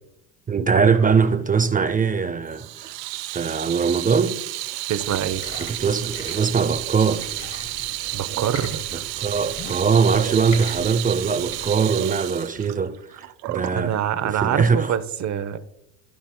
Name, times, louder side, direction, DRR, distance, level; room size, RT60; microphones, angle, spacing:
voice 1, 0.5-2.9 3.3-4.4 5.6-7.3 8.9-13.9 14.2-14.9, right 5 dB, 20° right, 0.4 m, -22 dB
Water tap faucet / Sink (filling or washing), 2.5-13.8, right 18 dB, 85° right, 0.5 m, -31 dB
voice 2, 4.9-5.4 8.1-9.0 13.7-15.6, right 9 dB, 35° right, 0.8 m, -25 dB
sound 1, 5.0-11.7, left 3 dB, 40° left, 3.2 m, -40 dB
15.0 x 5.6 x 2.2 m
hypercardioid pair, 70°, 49 cm